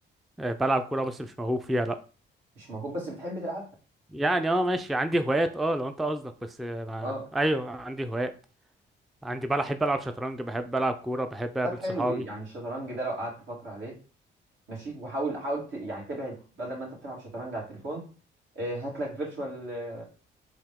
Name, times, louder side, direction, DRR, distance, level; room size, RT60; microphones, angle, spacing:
voice 1, 0.4-2.0 4.1-8.3 9.2-11.7 12.0-12.2, right 1 dB, ahead, 9 dB, 0.3 m, -28 dB
voice 2, 2.5-3.7 7.0-7.3 11.6-13.9 14.7-18.1 18.5-20.0, right 1 dB, 75° right, -4 dB, 2.6 m, -34 dB
4.9 x 2.8 x 3.5 m, 0.37 s
cardioid pair, 90°, 20 cm